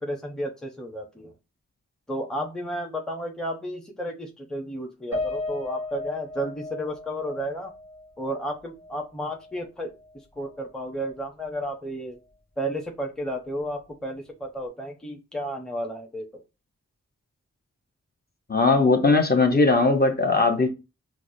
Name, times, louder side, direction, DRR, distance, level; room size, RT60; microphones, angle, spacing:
voice 1, 0.0-1.3 2.1-7.7 8.2-9.9 10.4-12.2 12.6-16.4, equal, ahead, 0.8 m, -32 dB
Piano, 5.1-9.6 10.0-10.1 10.5-10.6, left 2 dB, 60° left, 1.1 m, -35 dB
voice 2, 18.5-20.7, left 3 dB, 30° left, 0.8 m, -19 dB
4.6 x 2.1 x 2.7 m
cardioid pair, 45°, 30 cm